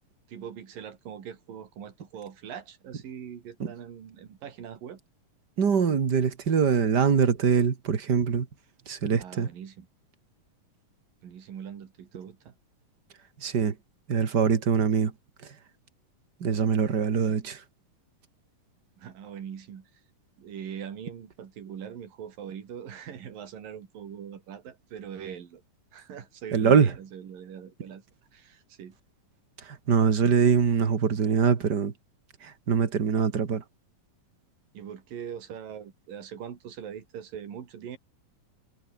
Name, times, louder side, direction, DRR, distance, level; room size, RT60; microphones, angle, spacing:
voice 1, 0.3-5.0 9.2-9.9 11.2-12.6 17.2-17.4 19.0-19.9 20.4-25.6 25.9-28.0 28.3-29.0 34.7-38.0, right 8 dB, 75° right, 4.5 m, -42 dB
voice 2, 5.6-8.5 8.9-9.5 13.4-13.8 14.1-15.1 16.4-17.6 26.5-26.9 29.7-31.9 32.4-33.6, right 6 dB, 35° right, 2.0 m, -23 dB
omnidirectional pair, 4.0 m